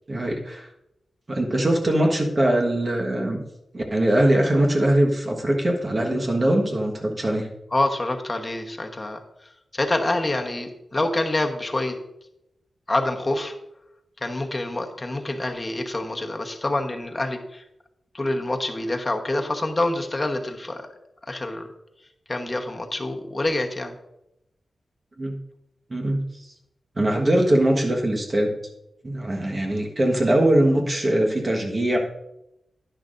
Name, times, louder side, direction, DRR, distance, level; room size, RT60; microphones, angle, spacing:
voice 1, 0.1-0.7 1.3-3.4 3.7-7.5 25.2-25.4 25.9-26.5 27.0-28.5 29.0-32.0, right 1 dB, 35° right, 0 dB, 1.4 m, -22 dB
voice 2, 7.7-9.2 9.7-12.0 12.9-13.5 14.2-17.6 18.1-20.9 21.3-21.7 22.3-23.9, left 2 dB, 30° left, 4 dB, 1.1 m, -26 dB
10.5 x 10.5 x 2.6 m, 0.86 s
wide cardioid pair, 85°, 0 cm